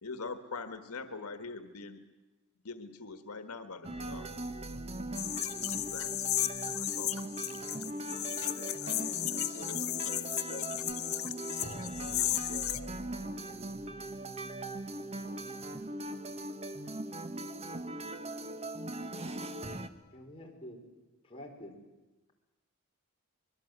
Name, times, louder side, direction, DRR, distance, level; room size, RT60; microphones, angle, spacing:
voice 1, 0.0-2.0 2.6-4.4 5.9-6.1 6.7-7.2, left 4 dB, 90° left, 8 dB, 1.5 m, -43 dB
sound 1, 3.8-19.9, right 2 dB, 30° right, 1.2 m, -40 dB
sound 2, 5.1-12.8, left 15 dB, 65° left, 0.9 m, -34 dB
voice 2, 8.4-10.8 11.6-13.5, left 3 dB, 50° left, 4 dB, 1.6 m, -49 dB
voice 3, 20.1-20.8 21.2-21.7, left 1 dB, 25° left, -1 dB, 4.9 m, -48 dB
25.0 x 22.0 x 8.1 m, 1.1 s
head